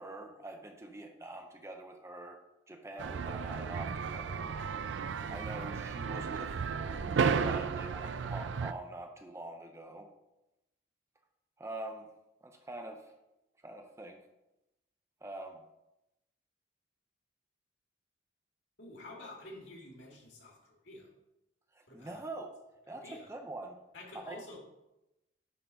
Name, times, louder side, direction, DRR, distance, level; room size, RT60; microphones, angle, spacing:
voice 1, 0.0-2.4 2.7-4.5 5.3-10.1 11.6-12.1 12.4-13.1 13.6-14.2 15.2-15.6 21.7-23.8 24.3-24.4, right 2 dB, 15° right, 4 dB, 0.5 m, -45 dB
sound 1, 3.0-8.7, right 6 dB, 70° right, 0.4 m, -34 dB
voice 2, 18.8-21.1 21.9-22.3 22.9-23.3 23.9-24.6, left 2 dB, 65° left, -1 dB, 2.2 m, -49 dB
10.0 x 3.9 x 4.0 m, 0.93 s
head